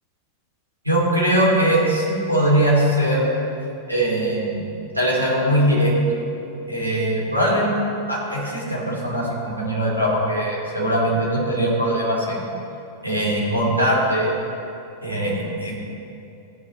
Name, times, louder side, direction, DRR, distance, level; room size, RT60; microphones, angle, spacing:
voice 1, 0.8-3.3 3.9-4.6 4.9-5.9 6.7-7.8 8.1-12.4 13.0-14.4 15.0-15.9, right 1 dB, 85° right, -5 dB, 3.0 m, -21 dB
16.0 x 10.5 x 3.1 m, 2.7 s
figure-of-eight pair, 90°, 0 cm